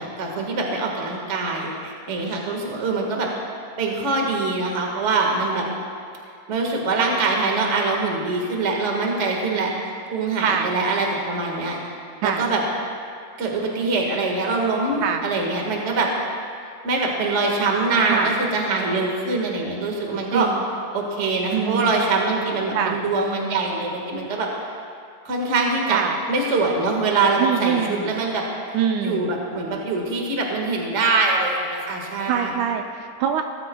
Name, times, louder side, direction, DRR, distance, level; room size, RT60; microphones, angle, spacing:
voice 1, 0.0-3.3 3.8-5.6 6.5-11.9 12.2-12.6 13.4-16.1 16.8-20.5 20.9-24.5 25.2-26.0 26.3-28.4 29.0-32.6, right 3 dB, 35° right, 0 dB, 1.2 m, -23 dB
voice 2, 20.3-20.6 21.5-21.9 22.7-23.0 25.9-26.2 27.4-28.1 28.7-29.3 32.3-33.5, right 8 dB, 80° right, 5 dB, 1.9 m, -24 dB
18.5 x 14.5 x 2.3 m, 2.3 s
omnidirectional pair, 3.6 m